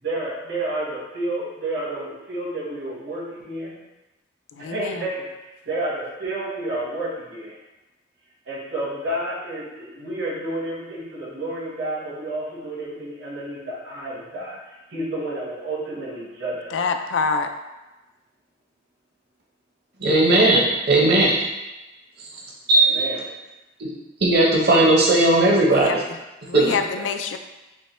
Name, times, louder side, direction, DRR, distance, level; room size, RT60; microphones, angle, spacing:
voice 1, 0.0-3.8 4.6-5.2 5.6-7.5 8.5-16.9 22.7-23.2 27.0-27.1, right 1 dB, 75° right, -5 dB, 1.4 m, -30 dB
voice 2, 4.6-4.9 16.7-17.5 25.7-26.0 26.5-27.4, left 5 dB, 75° left, 7 dB, 0.3 m, -25 dB
voice 3, 20.0-21.4 22.7-22.9 23.8-23.9 24.2-26.0 26.5-26.8, right 2 dB, 55° right, -3 dB, 0.8 m, -17 dB
5.3 x 2.2 x 3.1 m, 1.1 s
head